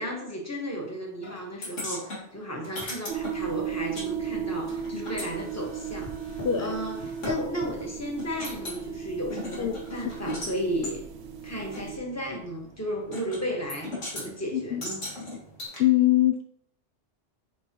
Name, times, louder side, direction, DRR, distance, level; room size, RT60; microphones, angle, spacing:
voice 1, 0.0-11.0 11.4-15.0, equal, 15° left, 0 dB, 1.3 m, -34 dB
Microwave oven, 1.2-1.7 2.0-4.2 4.6-15.7, equal, 40° left, 1.6 m, -47 dB
sound 1, 1.6-4.1 4.3-7.3 7.8-7.9 8.2-8.8 9.3-10.5 10.8-11.0 11.7-11.8 13.1-13.4 13.7-14.3 14.8-15.8, left 1 dB, 80° left, 2.3 m, -38 dB
sound 2, 3.1-12.0, right 7 dB, 80° right, 0.9 m, -36 dB
voice 2, 15.8-16.4, left 13 dB, 65° left, 5 dB, 0.7 m, -22 dB
7.6 x 4.6 x 2.9 m, 0.69 s
omnidirectional pair, 1.2 m